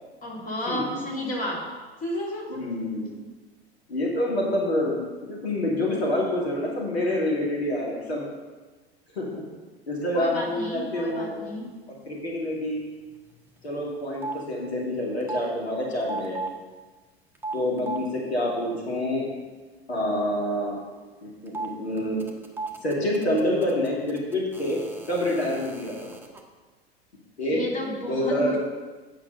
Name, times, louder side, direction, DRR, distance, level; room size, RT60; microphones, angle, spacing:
voice 1, 0.2-1.7 2.0-2.6 10.1-11.7 27.5-28.6, equal, 25° left, -2 dB, 2.6 m, -32 dB
voice 2, 2.5-3.2 3.9-8.2 9.1-9.4 9.9-11.4 12.1-12.8 13.6-16.4 17.5-19.3 19.9-20.8 21.2-22.2 22.8-24.8 25.1-26.1 27.4-27.6 28.0-28.6, left 1 dB, 75° left, -3 dB, 2.2 m, -27 dB
sound 1, 13.1-13.6 13.9-14.4 15.2-15.4 16.0-16.5 17.3-18.0 21.5-21.7 22.0-26.4, right 4 dB, 5° right, 1.1 m, -36 dB
8.7 x 6.5 x 5.5 m, 1.3 s
figure-of-eight pair, 85°, 32 cm